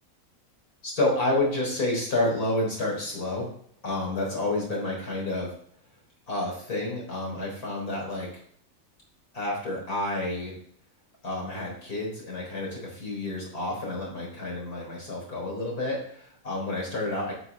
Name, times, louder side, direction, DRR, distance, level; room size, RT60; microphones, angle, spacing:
voice 1, 0.8-3.5 3.8-5.5 6.3-8.3 9.3-10.5 11.2-17.3, left 2 dB, 80° left, -2 dB, 4.6 m, -29 dB
11.0 x 8.1 x 3.5 m, 0.63 s
omnidirectional pair, 1.6 m